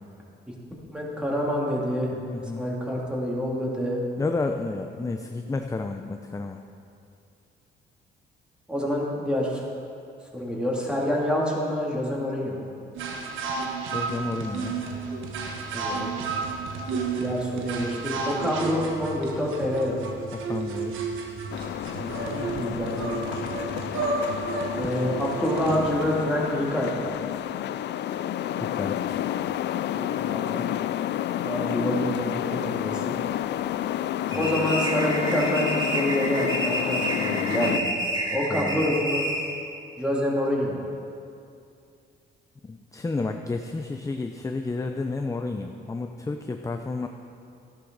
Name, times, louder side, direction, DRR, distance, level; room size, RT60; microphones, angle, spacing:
voice 1, 0.9-2.1 2.6-4.0 8.7-9.7 10.3-12.6 15.7-16.4 17.2-20.1 22.0-23.1 24.8-27.1 29.9-30.7 31.4-33.2 34.3-37.9 38.3-39.3 40.0-40.8, equal, 5° right, -4 dB, 2.8 m, -27 dB
voice 2, 2.2-2.6 4.2-6.6 13.9-14.8 20.3-20.9 24.8-25.0 28.6-29.2 34.3-34.6 38.5-39.0 42.7-47.1, left 3 dB, 15° left, 5 dB, 0.6 m, -31 dB
sound 1, 12.9-26.0, right 4 dB, 85° right, 1.3 m, -32 dB
sound 2, 21.5-37.8, left 12 dB, 60° left, 0.4 m, -30 dB
sound 3, 34.3-39.6, right 1 dB, 20° right, 3.4 m, -29 dB
13.5 x 11.0 x 4.0 m, 2.5 s
cardioid pair, 90°, 20 cm